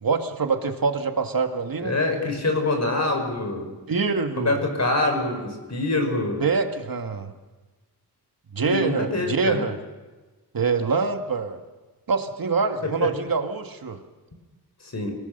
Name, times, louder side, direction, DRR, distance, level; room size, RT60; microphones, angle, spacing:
voice 1, 0.0-1.9 3.9-4.6 6.4-7.3 8.5-9.8 10.5-11.6 12.1-14.0, right 4 dB, 60° right, 6 dB, 1.9 m, -25 dB
voice 2, 1.8-3.7 4.4-6.4 8.6-9.7 13.0-13.1 14.8-15.1, left 2 dB, 40° left, 4 dB, 5.4 m, -25 dB
29.0 x 18.5 x 6.7 m, 1.2 s
wide cardioid pair, 125°, 40 cm